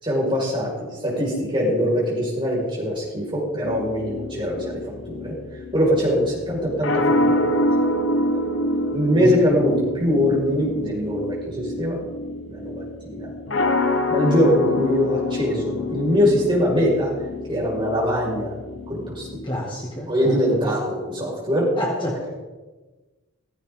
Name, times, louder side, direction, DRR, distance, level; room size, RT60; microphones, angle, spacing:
voice 1, 0.0-0.7 1.0-4.8 5.1-5.3 5.7-7.4 8.9-12.0 12.5-13.3 14.1-17.1 17.5-18.5 18.9-19.3 20.1-21.7, equal, 20° right, -5 dB, 5.5 m, -22 dB
sound 1, 3.6-19.5, left 1 dB, 60° left, 1.2 m, -26 dB
voice 2, 19.4-20.5 21.8-22.2, equal, 20° left, -3 dB, 2.1 m, -28 dB
16.0 x 15.5 x 3.8 m, 1.2 s
head